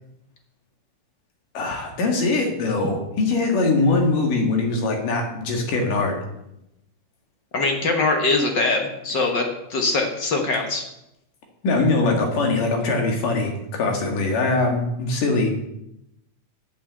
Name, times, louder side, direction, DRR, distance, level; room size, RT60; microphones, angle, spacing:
voice 1, 1.6-6.2 11.6-15.5, left 3 dB, 80° left, 2 dB, 3.5 m, -22 dB
voice 2, 7.5-9.4 9.7-10.8, left 3 dB, 55° left, 3 dB, 1.3 m, -22 dB
8.0 x 7.8 x 7.9 m, 0.84 s
omnidirectional pair, 3.7 m